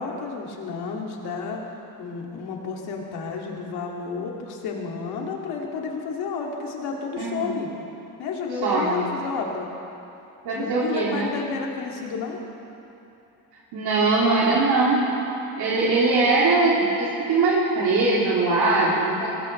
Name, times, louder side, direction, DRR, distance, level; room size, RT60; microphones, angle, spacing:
voice 1, 0.0-1.7 2.0-7.7 8.2-9.7 10.5-12.4, left 5 dB, 75° left, 0 dB, 2.4 m, -31 dB
voice 2, 7.2-7.5 8.6-9.0 10.4-11.3 13.7-15.0 15.6-19.3, right 3 dB, 75° right, -6 dB, 2.8 m, -21 dB
21.5 x 18.0 x 3.2 m, 2.9 s
supercardioid pair, 75°, 39 cm